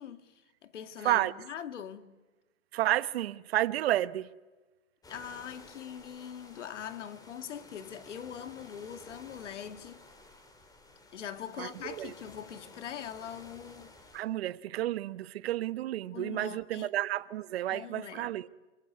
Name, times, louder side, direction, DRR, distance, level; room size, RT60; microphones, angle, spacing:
voice 1, 0.0-2.1 5.1-10.1 11.1-14.0 16.0-16.9 17.7-18.3, left 9 dB, 70° left, 2.4 m, -42 dB
voice 2, 2.7-4.3 11.6-12.1 14.1-18.5, right 14 dB, 55° right, 1.1 m, -31 dB
sound 1, 5.0-14.2, left 2 dB, 10° left, 3.6 m, -53 dB
27.0 x 23.5 x 9.5 m
hypercardioid pair, 145°, 37 cm